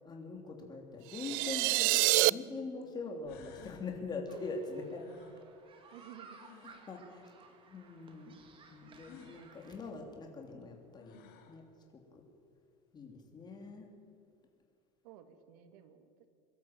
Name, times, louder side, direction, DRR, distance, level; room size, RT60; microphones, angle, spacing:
voice 1, 0.0-5.0 6.6-7.3 7.7-8.4 8.7-11.2 11.5-11.6 11.9-12.2 12.9-13.9, left 3 dB, 20° left, 3 dB, 3.0 m, -43 dB
sound 1, 1.1-2.3, right 27 dB, 55° right, 0.4 m, -27 dB
sound 2, 2.8-2.9 3.3-3.9 5.0-6.9 9.0-9.4 10.6-10.7 11.0-11.6, left 7 dB, 50° left, 3.0 m, -57 dB
sound 3, 4.3-9.9, right 5 dB, 25° right, 2.2 m, -58 dB
voice 2, 5.9-6.4 15.0-16.3, right 10 dB, 80° right, 8 dB, 2.4 m, -54 dB
23.0 x 12.5 x 8.9 m, 2.4 s
supercardioid pair, 155°, 20 cm